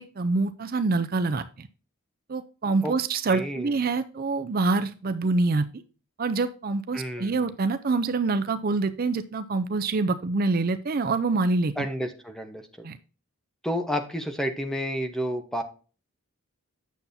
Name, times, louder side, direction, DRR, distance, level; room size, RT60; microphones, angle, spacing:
voice 1, 0.0-1.7 2.3-5.7 6.2-11.9 12.8-13.0, right 3 dB, 45° right, 10 dB, 0.5 m, -26 dB
voice 2, 3.3-3.8 6.9-7.4 11.8-12.9 13.6-15.6, equal, ahead, 7 dB, 1.0 m, -30 dB
9.2 x 7.0 x 2.7 m, 0.35 s
head